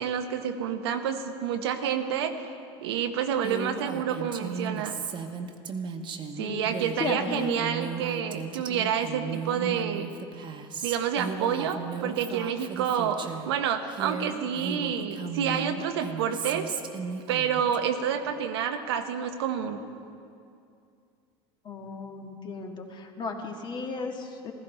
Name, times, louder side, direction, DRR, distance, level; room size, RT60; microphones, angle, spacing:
voice 1, 0.0-2.5 2.8-5.0 6.4-10.1 10.8-16.7 17.3-19.8, right 8 dB, 80° right, 7 dB, 0.9 m, -29 dB
Female speech woman speaking, 3.4-13.5 13.9-17.8, right 6 dB, 35° right, 1.0 m, -36 dB
voice 2, 6.4-7.7 21.6-24.5, left 4 dB, 35° left, 3 dB, 1.7 m, -35 dB
15.5 x 14.5 x 3.4 m, 2.5 s
hypercardioid pair, 90°, 13 cm